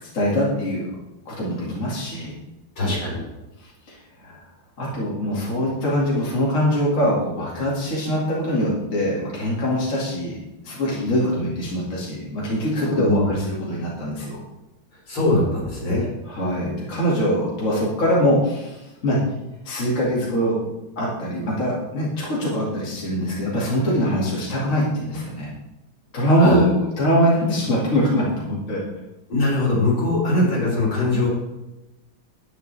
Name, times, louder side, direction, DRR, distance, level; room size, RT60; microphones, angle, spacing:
voice 1, 0.0-0.9 1.3-2.3 2.8-3.0 3.9-4.0 4.2-4.4 4.8-10.4 10.6-14.4 16.3-19.2 19.6-20.6 21.0-25.5 26.1-28.8, equal, 40° left, -6 dB, 2.7 m, -23 dB
voice 2, 2.8-3.2 13.1-13.2 15.1-16.1 26.4-26.6 29.3-31.3, left 2 dB, 70° left, -5 dB, 4.8 m, -21 dB
11.0 x 9.8 x 3.4 m, 1.0 s
omnidirectional pair, 2.3 m